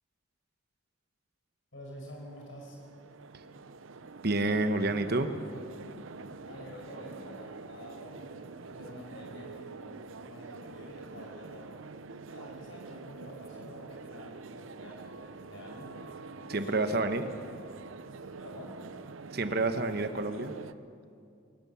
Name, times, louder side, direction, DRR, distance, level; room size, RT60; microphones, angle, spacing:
voice 1, 1.7-2.8 6.4-11.8 12.3-16.0 16.5-16.9 18.4-18.8, equal, 75° left, -1 dB, 5.6 m, -48 dB
sound 1, 1.9-20.7, right 4 dB, 85° right, 0.7 m, -46 dB
voice 2, 4.2-5.3 16.5-17.2 19.3-20.5, right 2 dB, 50° right, 9 dB, 1.1 m, -29 dB
22.5 x 19.0 x 7.1 m, 2.4 s
head